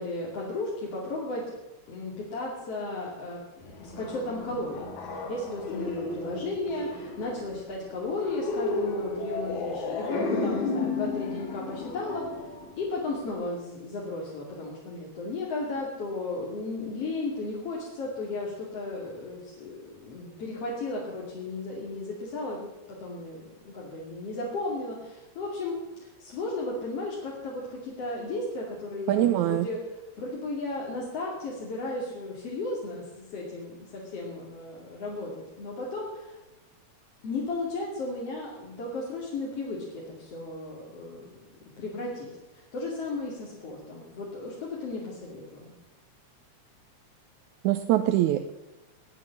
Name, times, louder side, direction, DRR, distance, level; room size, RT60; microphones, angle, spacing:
voice 1, 0.0-1.4 1.9-3.4 3.8-4.8 5.1-12.2 12.8-36.4 37.2-41.3 41.8-45.8, left 2 dB, 55° left, -4 dB, 3.5 m, -35 dB
sound 1, 3.6-13.3, left 3 dB, 75° left, 3.4 m, -33 dB
voice 2, 29.1-29.7 47.6-48.5, right 13 dB, 85° right, 8 dB, 2.2 m, -23 dB
19.5 x 9.1 x 7.2 m, 1.1 s
omnidirectional pair, 3.4 m